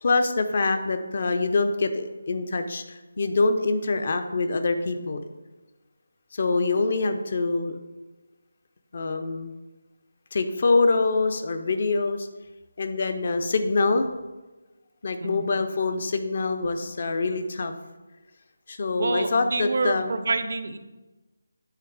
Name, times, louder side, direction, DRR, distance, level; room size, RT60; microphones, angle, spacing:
voice 1, 0.0-5.2 6.3-7.8 8.9-9.5 10.3-12.3 12.8-14.1 15.0-17.7 18.7-20.1, left 3 dB, 45° left, 8 dB, 0.6 m, -25 dB
voice 2, 19.0-20.8, right 3 dB, 50° right, 10 dB, 0.5 m, -27 dB
9.0 x 3.1 x 4.7 m, 1.2 s
figure-of-eight pair, 155°, 0 cm